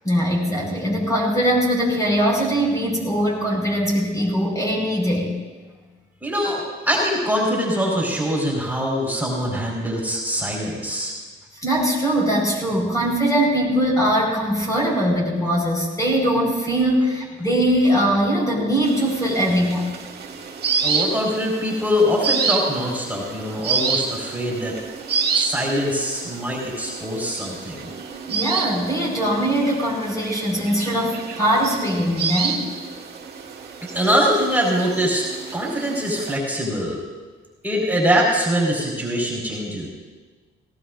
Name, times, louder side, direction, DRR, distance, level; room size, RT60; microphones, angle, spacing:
voice 1, 0.0-5.3 11.6-19.9 28.3-32.7, equal, 15° left, -3 dB, 5.0 m, -21 dB
voice 2, 6.2-11.1 20.8-24.8 25.3-27.9 33.9-35.2 35.5-37.0 37.6-39.9, equal, 10° right, -3 dB, 4.9 m, -23 dB
sound 1, 18.8-36.4, right 5 dB, 55° right, 2.2 m, -29 dB
18.5 x 18.0 x 2.7 m, 1.4 s
cardioid pair, 90°, 20 cm